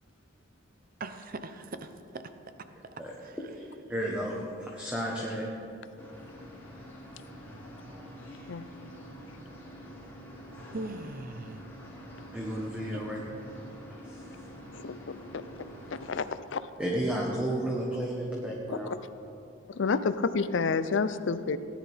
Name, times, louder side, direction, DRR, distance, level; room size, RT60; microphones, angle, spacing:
voice 1, 1.0-2.2 3.2-3.4 10.7-11.6 12.9-13.0, right 2 dB, 45° right, 9 dB, 0.6 m, -40 dB
voice 2, 3.9-5.5 12.3-13.2 14.0-14.2 16.8-18.9, right 1 dB, 5° right, -3 dB, 1.1 m, -32 dB
sound 1, 6.0-16.3, equal, 10° left, 3.2 m, -46 dB
voice 3, 19.7-21.6, left 4 dB, 65° left, 13 dB, 0.5 m, -28 dB
17.5 x 10.5 x 3.5 m, 2.7 s
head